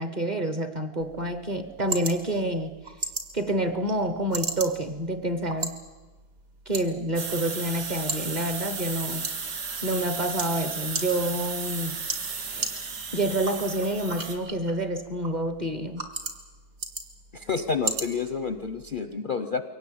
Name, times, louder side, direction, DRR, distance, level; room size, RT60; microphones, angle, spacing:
voice 1, 0.0-2.7 3.3-5.8 6.7-9.3 9.8-12.0 13.1-16.0, right 1 dB, 30° right, 9 dB, 1.0 m, -28 dB
sound 1, 1.0-19.0, right 3 dB, 60° right, 2.4 m, -38 dB
sound 2, 7.2-14.4, right 5 dB, 90° right, 2.4 m, -34 dB
voice 2, 17.3-19.6, left 5 dB, 45° left, 9 dB, 0.7 m, -29 dB
23.0 x 18.0 x 8.5 m, 1.3 s
omnidirectional pair, 1.7 m